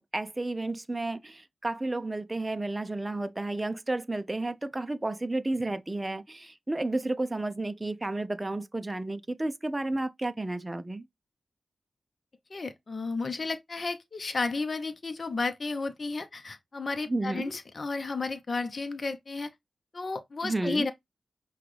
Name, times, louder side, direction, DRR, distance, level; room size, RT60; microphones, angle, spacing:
voice 1, 0.0-11.1 17.1-17.6 20.4-20.9, right 2 dB, 20° right, 0.5 m, -32 dB
voice 2, 12.5-19.5 19.9-20.9, left 3 dB, 50° left, 0.7 m, -33 dB
5.7 x 2.3 x 3.2 m
cardioid pair, 65°, 0 cm